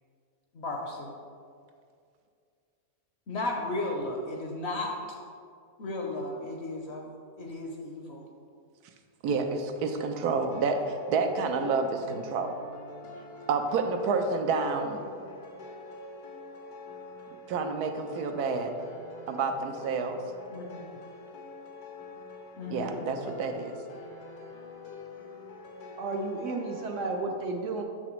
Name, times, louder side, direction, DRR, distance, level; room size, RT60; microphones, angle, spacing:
voice 1, 0.5-1.1 3.3-5.0 5.8-7.1 7.4-8.2 20.5-20.8 22.6-23.0, left 2 dB, 55° left, 0 dB, 0.8 m, -34 dB
voice 2, 9.2-12.6 13.5-15.0 17.5-18.7 19.3-20.2 22.7-23.7, right 4 dB, 90° right, 5 dB, 1.1 m, -29 dB
sound 1, 10.5-27.2, left 3 dB, 85° left, 1.4 m, -46 dB
voice 3, 26.0-27.8, right 3 dB, 65° right, 3 dB, 0.8 m, -32 dB
6.8 x 5.9 x 3.0 m, 2.3 s
omnidirectional pair, 1.6 m